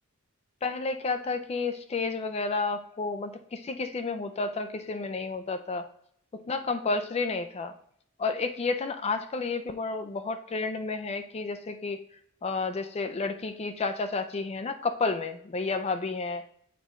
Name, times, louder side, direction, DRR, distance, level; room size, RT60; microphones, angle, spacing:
voice 1, 0.6-5.9 6.5-7.7 8.2-12.0 12.4-16.4, left 3 dB, 30° left, 8 dB, 0.4 m, -31 dB
8.1 x 4.2 x 3.6 m, 0.67 s
head